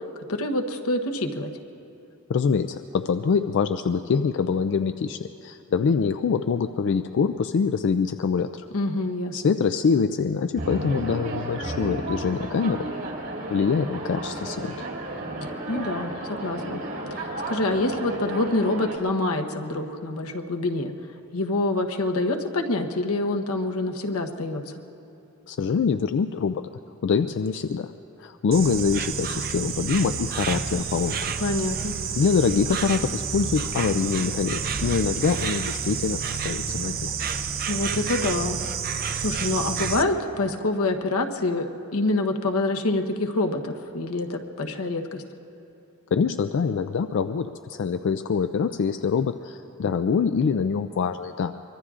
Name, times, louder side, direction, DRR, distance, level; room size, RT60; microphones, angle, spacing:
voice 1, 0.3-1.5 8.7-9.4 15.7-16.8 17.1-20.9 21.3-24.8 31.4-31.9 37.7-38.6 38.9-41.7 41.9-45.2, left 2 dB, 85° left, 4 dB, 1.0 m, -26 dB
voice 2, 2.3-8.6 9.3-13.0 13.5-14.9 25.5-26.6 27.0-27.9 28.2-31.3 32.2-37.1 46.1-51.5, left 5 dB, 60° left, 9 dB, 0.3 m, -24 dB
sound 1, 10.6-19.0, right 1 dB, 60° right, 2.7 m, -33 dB
Insect, 28.5-40.0, right 6 dB, 45° right, 0.6 m, -29 dB
24.0 x 23.0 x 2.5 m, 2.7 s
head